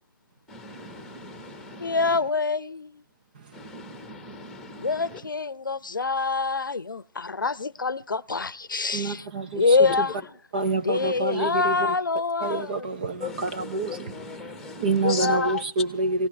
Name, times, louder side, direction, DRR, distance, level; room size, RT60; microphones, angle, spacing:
voice 1, 0.5-2.1 3.5-5.2 9.8-9.9 10.9-11.2 13.2-15.5, left 4 dB, ahead, 1.3 m, -39 dB
voice 2, 1.8-3.0 4.8-9.3 9.5-10.3 10.8-12.9 15.0-15.6, left 4 dB, 65° left, 0.8 m, -25 dB
voice 3, 8.9-9.6 10.5-11.7 12.4-14.1 14.8-16.3, right 2 dB, 25° right, 0.6 m, -27 dB
21.5 x 17.5 x 3.2 m
figure-of-eight pair, 150°, 12 cm